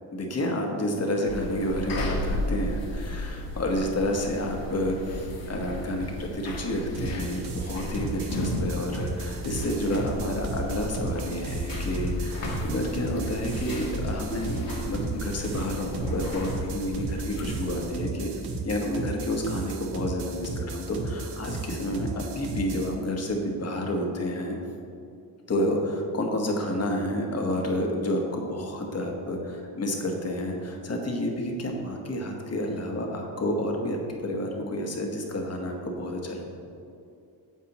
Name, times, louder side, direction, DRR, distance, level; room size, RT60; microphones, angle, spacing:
voice 1, 0.1-18.3 18.6-24.6 25.5-36.5, left 1 dB, 40° left, 1 dB, 1.3 m, -30 dB
sound 1, 1.3-17.9, left 1 dB, 55° left, 1.6 m, -34 dB
sound 2, 6.9-22.9, right 3 dB, 70° right, 1.0 m, -35 dB
9.3 x 7.3 x 3.0 m, 2.5 s
cardioid pair, 120°, 40 cm